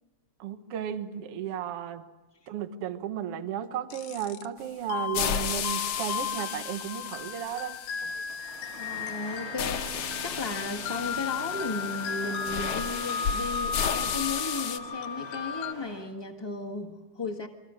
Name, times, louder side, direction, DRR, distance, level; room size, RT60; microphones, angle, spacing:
voice 1, 0.4-2.0 2.5-7.8, right 9 dB, 60° right, 1.9 m, -34 dB
sound 1, 3.9-4.5 4.9-15.7, left 6 dB, 85° left, 2.5 m, -35 dB
sound 2, 5.1-9.0 9.6-14.8, left 9 dB, 65° left, 1.8 m, -34 dB
Engine starting, 8.0-16.1, right 3 dB, 30° right, 2.5 m, -44 dB
voice 2, 8.7-17.5, left 3 dB, 15° left, 1.0 m, -35 dB
27.5 x 23.5 x 6.4 m
omnidirectional pair, 3.4 m